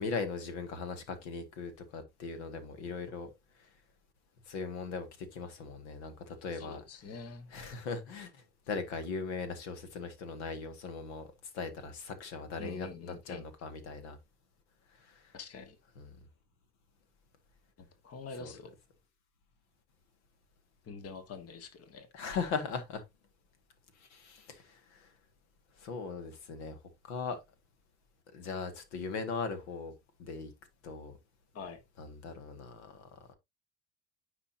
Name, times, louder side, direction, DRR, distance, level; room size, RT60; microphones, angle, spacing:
voice 1, 0.0-3.3 4.5-6.8 7.5-8.3 8.7-11.3 11.5-14.2 15.9-16.2 18.4-18.5 22.1-23.0 24.1-25.1 25.8-26.8 27.0-27.4 28.3-29.9 30.2-30.5 30.8-31.1 32.0-33.3, left 4 dB, 80° left, 1.8 m, -39 dB
voice 2, 6.5-7.5 12.6-13.4 15.3-15.7 17.8-18.7 20.8-22.1 31.5-31.8, left 4 dB, 45° left, 1.5 m, -45 dB
9.7 x 5.1 x 2.7 m
hypercardioid pair, 70°, 34 cm